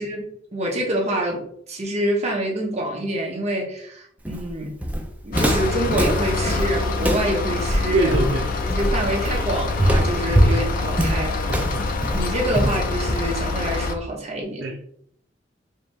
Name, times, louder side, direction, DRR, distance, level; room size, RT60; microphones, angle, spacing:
voice 1, 0.0-4.7 5.2-8.3 8.7-11.4 12.0-14.7, right 1 dB, 40° right, -2 dB, 1.0 m, -26 dB
Walk footsteps, 4.2-13.5, equal, 10° right, 0.4 m, -23 dB
sound 1, 5.3-14.0, left 3 dB, 50° left, 0.5 m, -26 dB
voice 2, 7.9-8.4 10.3-10.4 11.5-11.8 14.6-14.8, right 2 dB, 75° right, 2 dB, 0.5 m, -24 dB
5.0 x 2.4 x 2.8 m, 0.65 s
head